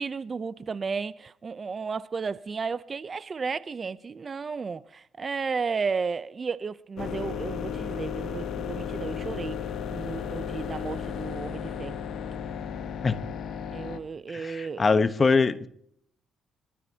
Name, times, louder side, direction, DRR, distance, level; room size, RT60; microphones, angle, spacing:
voice 1, 0.0-9.6 9.9-12.0 13.7-14.9, right 5 dB, 40° right, 0.6 m, -33 dB
sound 1, 7.0-14.0, left 7 dB, 70° left, 1.2 m, -34 dB
voice 2, 14.3-15.7, left 4 dB, 35° left, 1.0 m, -23 dB
25.5 x 13.0 x 2.8 m
cardioid pair, 90°, 0 cm